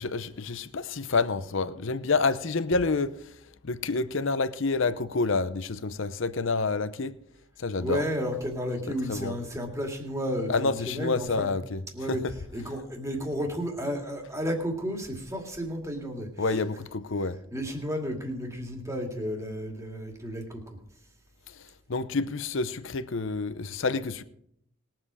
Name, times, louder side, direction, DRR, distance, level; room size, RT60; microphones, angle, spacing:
voice 1, 0.0-3.2 3.6-7.1 7.6-8.0 9.1-9.4 10.5-11.8 12.1-12.3 16.4-17.4 21.9-24.2, left 3 dB, 60° left, 0.7 m, -28 dB
voice 2, 7.8-11.5 11.9-12.2 12.5-16.6 17.5-20.8, equal, 15° right, 2.2 m, -32 dB
20.5 x 7.7 x 4.9 m
head